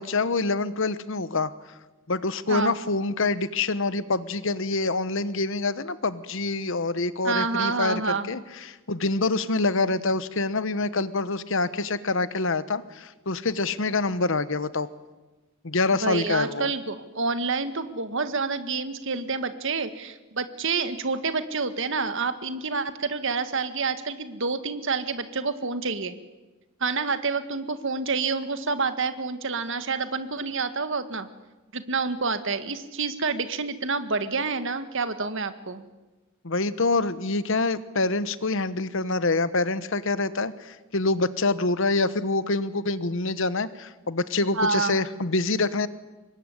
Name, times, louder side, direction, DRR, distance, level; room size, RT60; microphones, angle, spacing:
voice 1, 0.0-1.5 2.1-14.9 15.6-16.7 36.4-45.9, left 3 dB, 65° left, 14 dB, 1.1 m, -26 dB
voice 2, 7.2-8.3 16.0-26.1 26.8-31.3 31.7-35.9 44.5-45.0, right 4 dB, 60° right, 10 dB, 1.8 m, -28 dB
25.0 x 21.0 x 9.9 m, 1.1 s
head